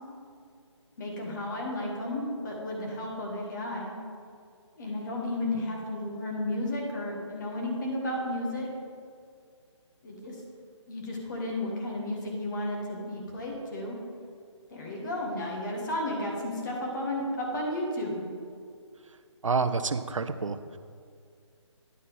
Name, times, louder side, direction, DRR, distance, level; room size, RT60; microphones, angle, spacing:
voice 1, 1.0-3.9 4.8-8.7 10.0-10.4 10.9-14.0 14.7-18.2, left 1 dB, 40° left, -2 dB, 1.8 m, -33 dB
voice 2, 19.4-20.8, right 4 dB, 90° right, 11 dB, 0.5 m, -28 dB
9.4 x 4.2 x 5.3 m, 2.2 s
figure-of-eight pair, 155°, 16 cm